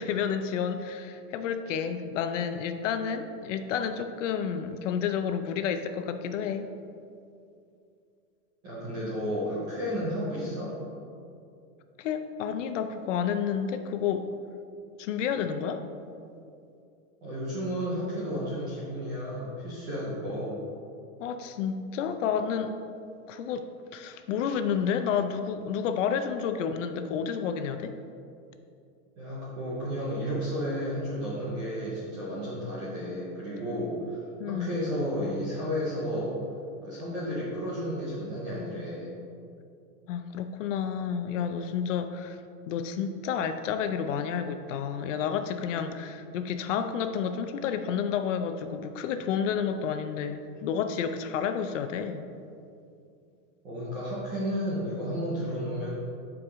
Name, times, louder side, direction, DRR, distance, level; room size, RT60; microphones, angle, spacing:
voice 1, 0.0-6.7 12.0-14.3 15.0-15.8 21.2-22.7 23.3-23.7 23.9-27.9 34.4-34.7 40.1-42.4 42.7-52.3, left 7 dB, 55° left, 8 dB, 0.6 m, -30 dB
voice 2, 8.6-10.7 17.2-20.6 29.2-36.4 36.8-39.1 53.6-55.9, equal, 10° right, -8 dB, 0.3 m, -32 dB
12.0 x 4.8 x 3.6 m, 2.5 s
supercardioid pair, 155°, 45 cm